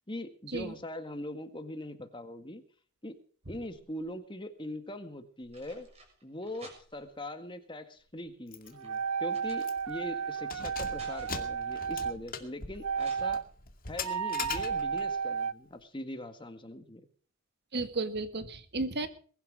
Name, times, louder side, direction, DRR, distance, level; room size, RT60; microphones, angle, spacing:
voice 1, 0.1-2.6 3.0-3.1 3.5-5.9 6.2-13.4 13.9-17.0, left 1 dB, 20° left, 8 dB, 1.9 m, -41 dB
sound 1, 3.4-4.2 5.1-7.2 7.9-10.2 10.6-11.6 13.0-13.2, right 2 dB, 30° right, 6.7 m, -55 dB
Keys jangling, 8.5-8.7 9.0-9.1 9.6-10.0 10.4-15.1, left 5 dB, 40° left, 2.3 m, -41 dB
sound 2, 8.8-12.1 12.8-13.4 14.0-15.5, right 6 dB, 75° right, 0.8 m, -33 dB
voice 2, 17.7-19.1, right 3 dB, 50° right, 10 dB, 1.8 m, -33 dB
22.0 x 11.5 x 4.8 m, 0.43 s
head